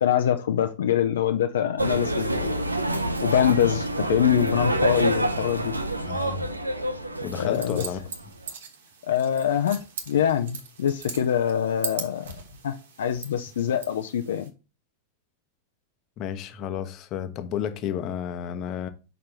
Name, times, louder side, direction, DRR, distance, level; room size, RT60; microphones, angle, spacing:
voice 1, 0.0-2.6 3.2-5.8 7.3-7.9 9.1-14.5, left 9 dB, 60° left, 0.5 m, -24 dB
sound 1, 1.8-8.5, right 1 dB, 85° right, 0.6 m, -27 dB
voice 2, 6.1-6.4 7.2-8.1 16.2-18.9, left 9 dB, 35° left, 0.8 m, -32 dB
sound 2, 7.5-14.5, right 6 dB, 60° right, 1.1 m, -40 dB
5.9 x 4.3 x 5.1 m
figure-of-eight pair, 90°, 0 cm